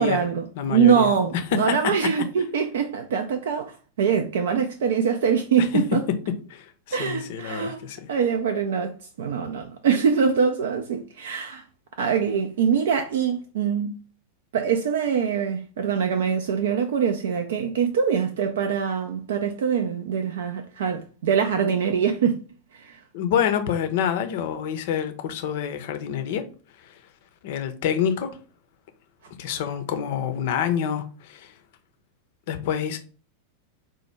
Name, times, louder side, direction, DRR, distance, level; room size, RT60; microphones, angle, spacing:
voice 1, 0.0-6.0 6.9-11.6 12.0-14.0 14.5-22.4 22.7-23.0, right 7 dB, 60° right, 0.3 m, -24 dB
voice 2, 0.6-1.1 6.5-8.1 23.1-26.4 26.8-26.9 27.4-28.4 29.4-31.5 32.5-33.0, left 8 dB, 50° left, 0.5 m, -27 dB
4.2 x 2.1 x 3.2 m
figure-of-eight pair, 90°, 0 cm